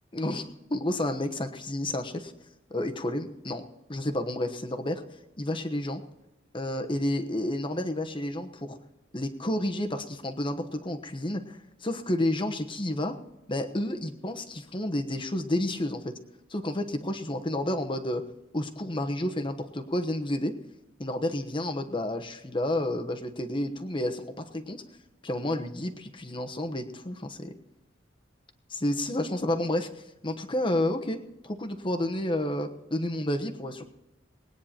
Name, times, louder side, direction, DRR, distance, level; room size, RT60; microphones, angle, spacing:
voice 1, 0.1-2.3 2.7-3.6 3.9-5.0 5.4-6.0 6.5-8.8 9.1-13.1 13.5-16.1 16.5-18.2 18.5-20.5 21.0-24.8 25.2-27.5 28.7-31.2 31.4-33.8, left 1 dB, 25° left, 6 dB, 1.2 m, -30 dB
20.5 x 9.6 x 4.4 m, 0.93 s
head